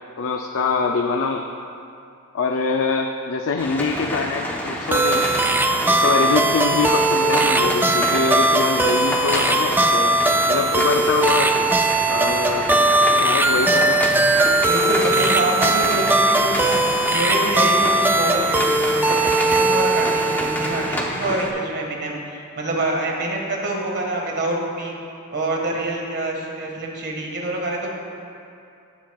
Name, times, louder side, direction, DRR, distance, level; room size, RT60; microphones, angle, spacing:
voice 1, 0.2-1.5 2.3-5.3 6.0-10.2 10.4-11.6 12.1-12.7 13.1-14.0, left 4 dB, 65° left, 3 dB, 0.5 m, -24 dB
sound 1, 3.6-21.5, left 1 dB, 10° left, 0.8 m, -28 dB
sound 2, 4.9-21.1, right 2 dB, 10° right, 0.3 m, -19 dB
voice 2, 14.7-16.8 17.1-24.9 25.3-27.9, right 1 dB, 50° right, -1 dB, 1.6 m, -26 dB
17.0 x 7.5 x 2.3 m, 2.6 s
head